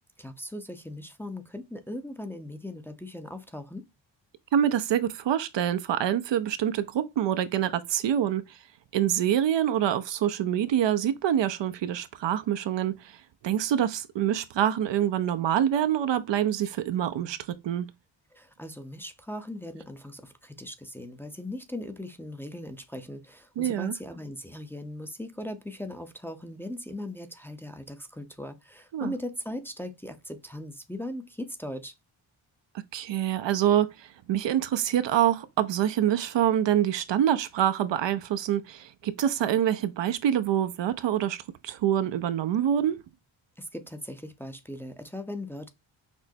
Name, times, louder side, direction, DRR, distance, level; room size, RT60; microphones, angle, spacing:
voice 1, 0.2-3.9 18.3-31.9 43.6-45.7, left 1 dB, 5° left, 0.6 m, -39 dB
voice 2, 4.5-8.6 8.9-13.2 13.4-17.9 23.6-24.0 28.9-29.1 32.9-43.0, right 10 dB, 65° right, 0.6 m, -26 dB
6.1 x 2.1 x 2.7 m
cardioid pair, 75°, 48 cm